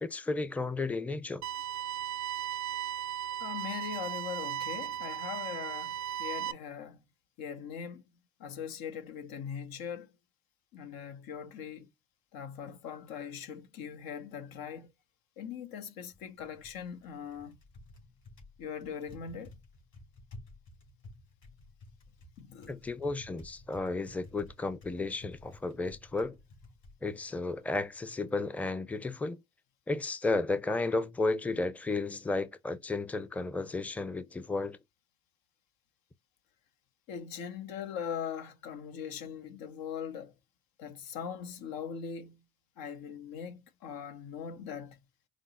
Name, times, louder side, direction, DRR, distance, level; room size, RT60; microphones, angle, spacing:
voice 1, 0.0-1.4 22.7-26.4 27.0-29.4 29.9-34.8, left 3 dB, 5° left, 0.5 m, -33 dB
sound 1, 1.4-6.5, right 10 dB, 50° right, 0.4 m, -36 dB
voice 2, 3.4-7.0 7.4-8.0 8.4-10.1 10.7-11.9 12.3-14.9 15.4-17.6 18.6-19.5 22.4-22.8 37.1-40.3 40.8-42.4 42.8-45.0, left 7 dB, 75° left, 0.7 m, -41 dB
Typing, 16.0-28.4, left 2 dB, 55° left, 3.1 m, -54 dB
5.0 x 2.0 x 4.0 m
supercardioid pair, 55°, 36 cm